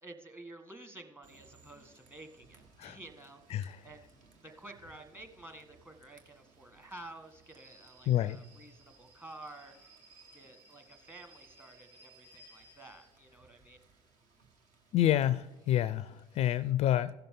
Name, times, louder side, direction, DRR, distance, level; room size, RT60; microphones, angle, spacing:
voice 1, 0.0-9.9 10.3-13.8, right 2 dB, 15° right, 6 dB, 1.5 m, -51 dB
Rain / Train, 1.2-16.7, right 3 dB, 60° right, 1.7 m, -61 dB
voice 2, 8.1-8.4 14.9-17.1, left 12 dB, 50° left, 17 dB, 0.4 m, -28 dB
15.5 x 6.8 x 3.7 m, 1.1 s
hypercardioid pair, 70°, 14 cm